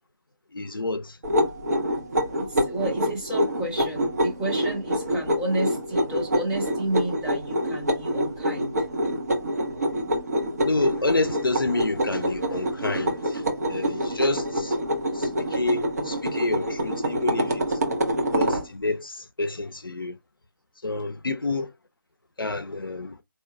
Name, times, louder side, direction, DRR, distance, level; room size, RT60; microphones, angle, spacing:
voice 1, 0.5-1.2 10.6-14.8 15.1-17.8 18.3-20.2 20.8-21.7 22.4-23.2, left 2 dB, 85° left, 0.4 m, -29 dB
sound 1, 1.2-18.7, equal, 45° right, 1.1 m, -26 dB
voice 2, 2.4-8.8, right 1 dB, 5° right, 0.6 m, -31 dB
4.3 x 2.7 x 2.2 m
figure-of-eight pair, 155°, 11 cm